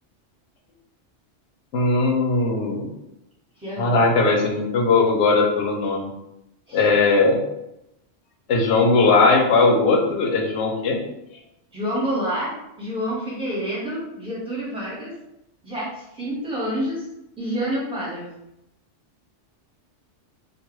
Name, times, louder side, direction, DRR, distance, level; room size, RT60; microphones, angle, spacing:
voice 1, 1.7-2.9 3.8-6.1 6.7-7.4 8.5-11.0, left 3 dB, 70° left, 1 dB, 0.8 m, -19 dB
voice 2, 3.6-4.1 6.7-6.8 11.7-15.1 15.6-17.0 17.4-18.3, equal, 5° right, -7 dB, 0.9 m, -28 dB
2.4 x 2.3 x 3.0 m, 0.86 s
omnidirectional pair, 1.3 m